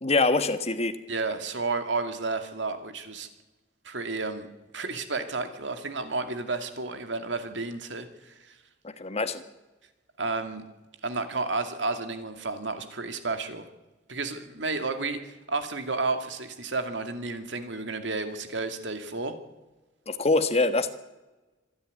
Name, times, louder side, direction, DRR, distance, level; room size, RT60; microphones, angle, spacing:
voice 1, 0.0-1.0 8.8-9.4 20.1-20.9, left 3 dB, 35° left, 10 dB, 1.4 m, -24 dB
voice 2, 1.1-3.3 3.8-4.5 4.7-8.6 10.2-10.6 11.0-13.7 14.1-19.4, right 3 dB, 80° right, 8 dB, 2.4 m, -31 dB
25.5 x 10.5 x 9.6 m, 1.1 s
head